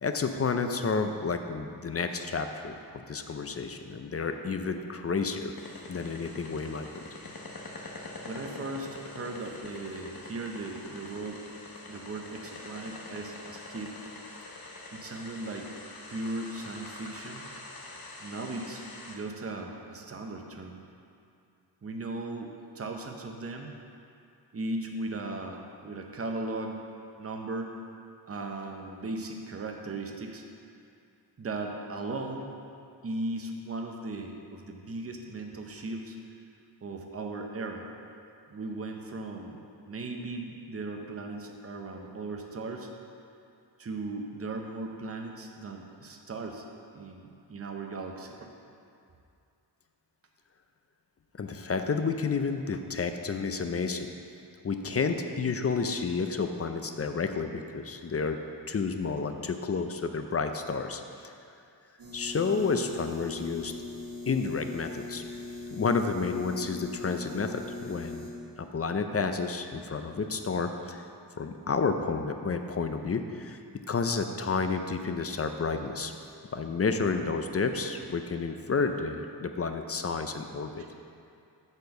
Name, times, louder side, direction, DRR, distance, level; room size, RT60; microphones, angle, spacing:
voice 1, 0.0-5.5 5.9-7.0 51.4-54.1 54.6-58.4 58.7-61.3 62.1-63.7 64.3-65.2 65.7-68.3 68.6-71.0 71.4-73.6 73.9-76.1 76.5-80.7, left 4 dB, 35° left, 7 dB, 0.4 m, -30 dB
sound 1, 5.6-19.1, left 2 dB, 55° left, 1.0 m, -45 dB
voice 2, 8.2-11.4 11.9-14.0 14.9-15.7 16.1-17.5 18.2-20.8 21.8-23.8 24.5-26.8 27.2-27.7 28.3-30.4 31.4-32.5 33.0-36.2 36.8-37.9 38.5-39.6 39.9-42.9 43.8-46.6 46.9-48.5 80.8-80.9, right 2 dB, 35° right, 2 dB, 0.7 m, -37 dB
sound 2, 62.0-68.3, left 2 dB, 75° right, 1.6 m, -41 dB
8.1 x 4.4 x 6.8 m, 2.5 s
wide cardioid pair, 125°, 42 cm